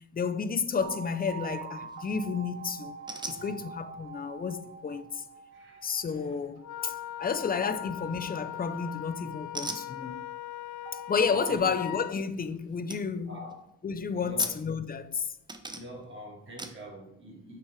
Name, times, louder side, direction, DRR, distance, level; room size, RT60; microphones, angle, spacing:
voice 1, 0.0-3.0 3.3-5.2 5.8-10.2 11.1-13.4 13.8-15.3, left 5 dB, 25° left, 0.7 m, -31 dB
sound 1, 0.8-9.9 10.9-11.6, right 7 dB, 65° right, 3.3 m, -45 dB
sound 2, 1.8-2.1 3.1-3.4 8.1-8.5 9.5-9.9 12.4-12.5 12.9-13.0 13.4-13.7 14.4-15.1 15.5-16.1 16.6-16.8, right 2 dB, 15° right, 1.0 m, -40 dB
voice 2, 5.5-5.9 11.5-11.6 13.3-13.6 14.2-14.6 15.7-17.6, equal, 35° right, 3.9 m, -45 dB
Wind instrument woodwind instrument, 6.6-12.1, left 13 dB, 60° left, 0.6 m, -40 dB
9.1 x 6.1 x 4.8 m
cardioid pair, 115°, 34 cm